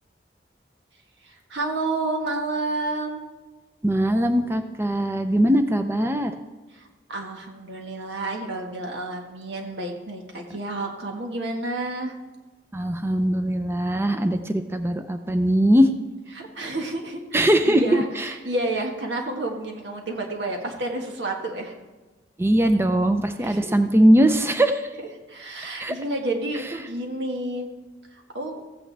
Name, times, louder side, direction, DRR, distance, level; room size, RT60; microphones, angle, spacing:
voice 1, 1.2-3.2 6.7-12.1 16.3-21.7 23.4-23.8 25.0-27.7 28.1-28.6, right 2 dB, 85° right, 1 dB, 1.6 m, -30 dB
voice 2, 3.8-6.3 12.7-15.9 17.3-17.8 18.2-18.3 22.4-24.9 25.8-25.9, equal, 15° right, 7 dB, 0.5 m, -20 dB
15.0 x 8.8 x 3.4 m, 1.2 s
head